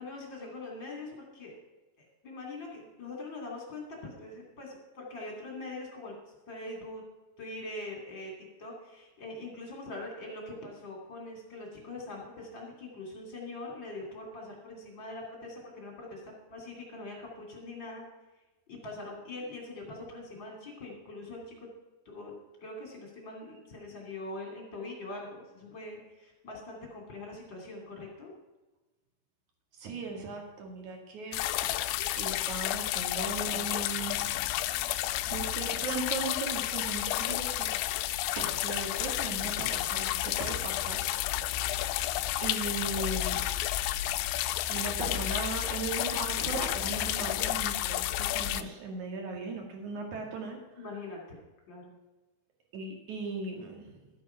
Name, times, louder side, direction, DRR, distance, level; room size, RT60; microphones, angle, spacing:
voice 1, 0.0-1.6 2.0-6.1 6.5-7.0 7.4-8.3 8.6-16.2 16.5-18.0 18.7-21.7 22.0-22.3 22.6-28.3 50.8-51.4 51.7-52.0, left 2 dB, 30° left, -1 dB, 2.6 m, -43 dB
voice 2, 29.8-31.4 32.2-34.6 34.9-37.8 38.4-41.1 42.4-43.4 44.1-50.6 52.7-53.9, right 3 dB, 50° right, 2 dB, 2.7 m, -38 dB
sound 1, 31.3-48.6, left 14 dB, 85° left, 2.8 m, -31 dB
13.0 x 8.6 x 5.7 m, 1.1 s
omnidirectional pair, 5.1 m